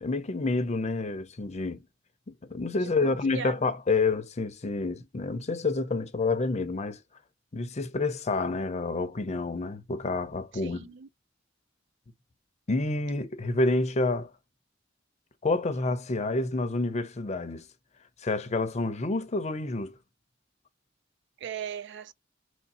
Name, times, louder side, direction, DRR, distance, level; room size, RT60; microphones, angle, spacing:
voice 1, 0.0-1.8 2.3-7.0 7.5-10.9 12.7-14.3 15.4-17.7 18.2-20.0, left 3 dB, 35° left, 0.6 m, -28 dB
voice 2, 2.8-3.7 10.5-11.1 21.4-22.1, right 8 dB, 65° right, 0.4 m, -39 dB
3.1 x 2.6 x 4.1 m
head